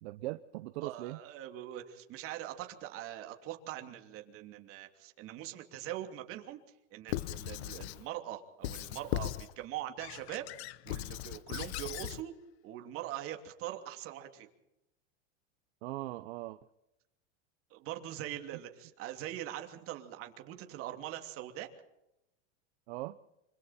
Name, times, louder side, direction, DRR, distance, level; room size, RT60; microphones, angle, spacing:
voice 1, 0.0-1.2 15.8-16.6 22.9-23.2, right 18 dB, 60° right, 11 dB, 0.9 m, -40 dB
voice 2, 0.8-6.6 6.9-10.5 10.8-12.3 12.6-14.5 17.7-21.7, right 13 dB, 35° right, 4 dB, 3.0 m, -42 dB
Squeak / Writing, 7.1-8.0 8.6-9.5 10.0-12.2, left 15 dB, 60° left, 1.0 m, -38 dB
26.5 x 26.5 x 4.4 m, 0.89 s
supercardioid pair, 155°, 36 cm